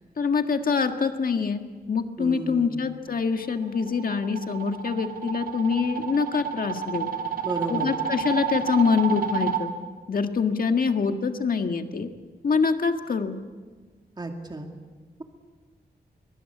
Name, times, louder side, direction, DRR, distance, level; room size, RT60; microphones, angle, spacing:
voice 1, 0.2-1.6 1.9-7.1 7.7-9.7 10.1-12.1 12.4-13.4, left 5 dB, 60° left, 6 dB, 1.7 m, -25 dB
voice 2, 2.2-2.9 7.4-8.0 14.2-14.7, right 2 dB, 25° right, 3 dB, 2.3 m, -33 dB
sound 1, 3.4-9.6, right 7 dB, 60° right, 2.4 m, -30 dB
24.0 x 19.5 x 8.4 m, 1.4 s
wide cardioid pair, 115°, 17 cm